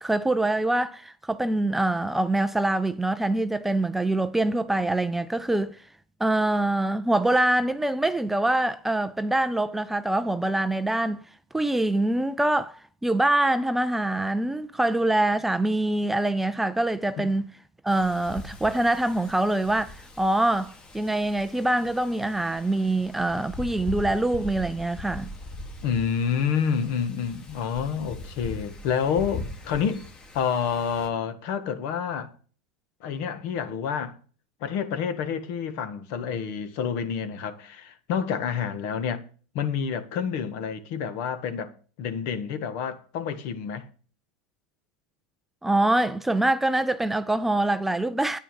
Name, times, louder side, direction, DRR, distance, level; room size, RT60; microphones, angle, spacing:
voice 1, 0.0-5.8 6.2-11.2 11.5-17.5 17.8-25.3 45.6-48.4, right 1 dB, 5° right, 0.5 m, -24 dB
Wind, 17.9-31.1, left 2 dB, 20° left, 2.0 m, -41 dB
voice 2, 25.8-30.0 30.3-32.3 33.0-34.1 34.6-39.2 39.5-41.7 42.0-43.9, left 7 dB, 55° left, 1.6 m, -28 dB
10.0 x 9.7 x 5.3 m
hypercardioid pair, 120°, 4 cm